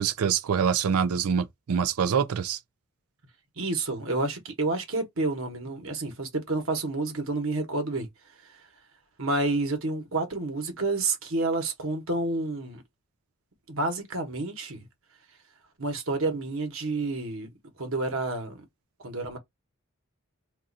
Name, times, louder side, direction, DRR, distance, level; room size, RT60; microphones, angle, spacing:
voice 1, 0.0-2.6, right 7 dB, 90° right, 0.5 m, -25 dB
voice 2, 3.6-8.1 9.2-12.8 13.7-14.9 15.8-17.5 17.8-18.6 19.0-19.4, right 2 dB, 65° right, 1.2 m, -29 dB
2.6 x 2.4 x 3.9 m
head